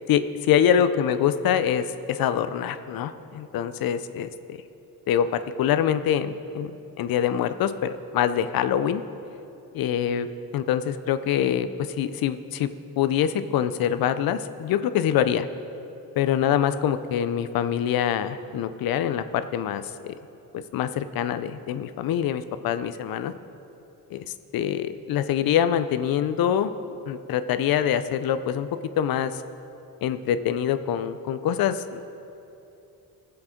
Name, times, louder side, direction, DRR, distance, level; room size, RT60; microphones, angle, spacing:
voice 1, 0.1-4.6 5.1-9.0 9.7-10.3 10.5-12.7 13.0-15.5 16.2-20.1 20.7-23.3 24.1-24.3 24.5-26.7 27.1-28.7 29.0-29.4 30.0-32.2, left 9 dB, 70° left, 12 dB, 0.7 m, -25 dB
19.5 x 7.6 x 4.4 m, 2.8 s
cardioid pair, 100°, 36 cm